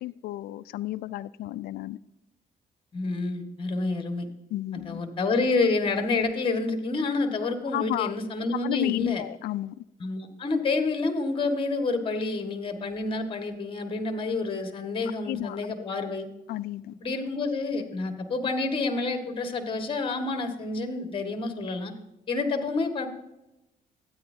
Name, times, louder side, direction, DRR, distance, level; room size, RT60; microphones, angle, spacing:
voice 1, 0.0-2.0 4.5-5.0 7.7-8.1 8.5-9.8 15.3-15.7 16.5-16.9, left 15 dB, 80° left, 0.4 m, -32 dB
voice 2, 2.9-4.3 4.7-9.2 10.0-16.3 17.0-21.9 22.3-23.1, left 3 dB, 35° left, 1.8 m, -28 dB
13.0 x 9.5 x 2.8 m
cardioid pair, 95°, 16 cm